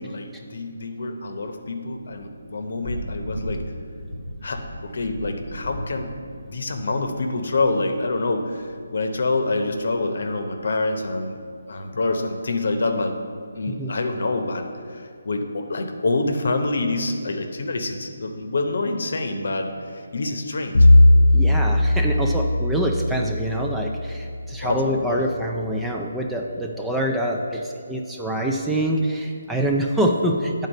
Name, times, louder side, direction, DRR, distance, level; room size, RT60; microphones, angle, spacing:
voice 1, 0.0-3.6 4.4-6.1 6.4-11.4 11.7-13.1 13.5-20.9 24.6-25.3, left 2 dB, 65° left, 6 dB, 0.8 m, -26 dB
Thunder / Rain, 1.9-11.4, equal, 60° right, 0.9 m, -38 dB
Bowed string instrument, 20.7-24.9, left 1 dB, 80° left, 0.3 m, -18 dB
voice 2, 21.3-30.7, right 1 dB, 5° right, 0 dB, 0.4 m, -25 dB
9.1 x 4.0 x 5.3 m, 2.2 s
figure-of-eight pair, 160°, 0 cm